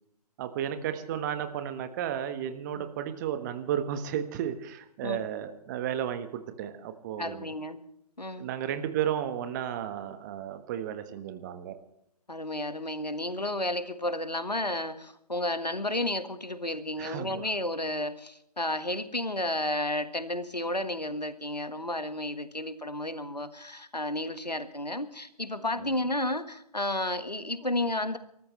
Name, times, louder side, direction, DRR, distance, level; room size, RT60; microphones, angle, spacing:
voice 1, 0.4-7.5 8.4-11.8 17.0-17.5 25.8-25.9, right 10 dB, 30° right, 9 dB, 1.3 m, -33 dB
voice 2, 7.2-7.8 8.2-8.5 12.3-28.2, left 1 dB, 90° left, 11 dB, 1.6 m, -32 dB
27.0 x 14.0 x 3.2 m, 0.78 s
figure-of-eight pair, 130°, 20 cm